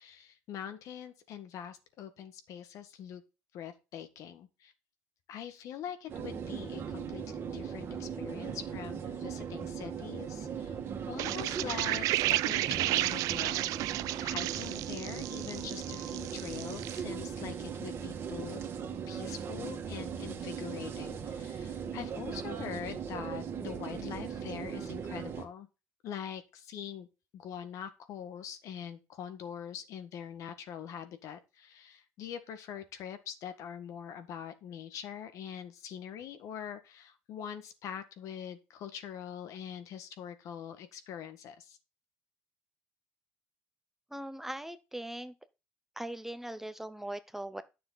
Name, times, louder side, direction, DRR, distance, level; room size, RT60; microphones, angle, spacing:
voice 1, 0.0-3.2 3.5-4.7 5.3-10.8 11.1-13.7 14.1-18.7 19.1-25.7 26.0-27.1 27.3-41.8, left 8 dB, 60° left, 1.6 m, -43 dB
sound 1, 6.1-25.5, right 7 dB, 40° right, 2.1 m, -39 dB
sound 2, 11.2-17.0, right 17 dB, 65° right, 0.4 m, -32 dB
voice 2, 44.1-45.3 46.0-47.6, right 1 dB, 5° right, 0.7 m, -40 dB
9.8 x 6.8 x 4.1 m
supercardioid pair, 100°, 6 cm